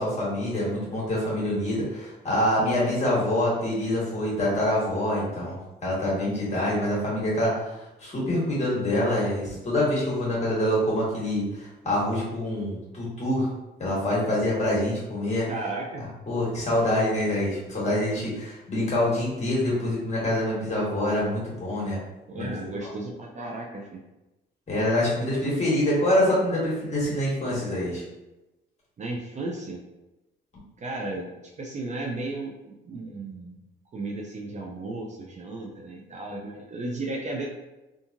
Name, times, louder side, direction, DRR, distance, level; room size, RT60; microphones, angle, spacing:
voice 1, 0.0-7.7 8.0-13.5 13.8-15.5 16.3-22.0 22.4-22.5 24.7-28.0, left 1 dB, 35° left, -6 dB, 1.4 m, -25 dB
voice 2, 15.4-16.1 22.3-24.0 29.0-29.8 30.8-32.5 32.8-33.6 33.9-37.5, right 2 dB, 35° right, -1 dB, 0.5 m, -34 dB
2.7 x 2.5 x 2.5 m, 1.0 s
cardioid pair, 90°, 20 cm